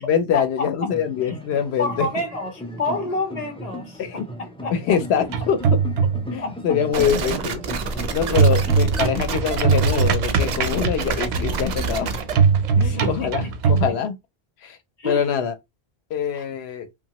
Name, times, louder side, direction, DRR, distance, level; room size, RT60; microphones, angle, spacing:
voice 1, 0.0-2.1 4.0-4.3 4.7-5.8 6.3-7.6 8.1-12.1 12.8-14.2 14.6-14.8 15.0-15.5 16.1-16.9, left 7 dB, 90° left, 0.9 m, -24 dB
sound 1, 0.9-13.2, equal, 10° left, 0.3 m, -37 dB
voice 2, 1.8-2.5 2.8-4.0 4.6-5.0 6.4-6.6 8.3-8.4 12.8-13.3 15.0-15.2 16.3-16.4, left 2 dB, 45° left, 0.7 m, -28 dB
sound 2, 5.2-6.4 8.4-13.9, right 6 dB, 85° right, 0.8 m, -21 dB
sound 3, 6.9-12.3, right 4 dB, 55° right, 0.5 m, -28 dB
2.8 x 2.2 x 2.8 m
omnidirectional pair, 1.1 m